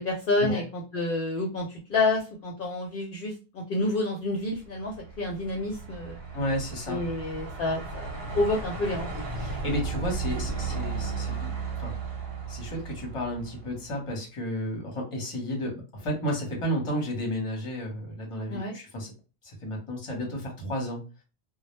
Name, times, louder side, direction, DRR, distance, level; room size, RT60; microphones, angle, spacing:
voice 1, 0.0-6.2 6.9-8.1 8.3-9.2 18.5-18.8, left 2 dB, 65° left, 0 dB, 0.7 m, -29 dB
Truck, 4.6-14.0, right 4 dB, 70° right, 0.9 m, -35 dB
voice 2, 6.3-7.0 9.4-11.9 12.5-19.1 19.4-21.0, equal, 35° left, 0 dB, 0.8 m, -32 dB
2.0 x 2.0 x 3.0 m, 0.32 s
omnidirectional pair, 1.0 m